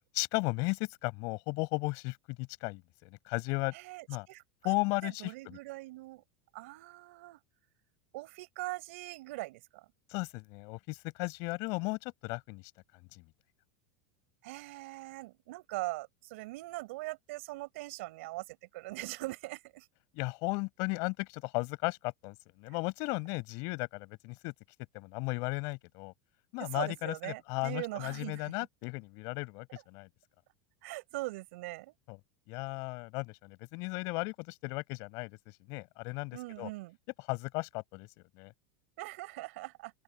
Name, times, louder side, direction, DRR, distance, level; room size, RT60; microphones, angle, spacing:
voice 1, 0.1-3.7 4.1-4.3 4.6-5.6 10.1-12.7 13.1-13.2 20.1-24.5 24.9-26.1 26.5-30.1 32.1-32.2 32.5-35.4 35.7-36.7 37.2-38.1 38.3-38.5, left 28 dB, 45° left, 6.8 m, -35 dB
voice 2, 3.7-4.7 5.0-6.2 6.5-7.4 8.1-9.6 14.4-19.8 26.6-28.4 30.8-31.9 36.3-37.0 39.0-39.9, right 21 dB, 60° right, 5.4 m, -41 dB
open air
supercardioid pair, 170°, 8 cm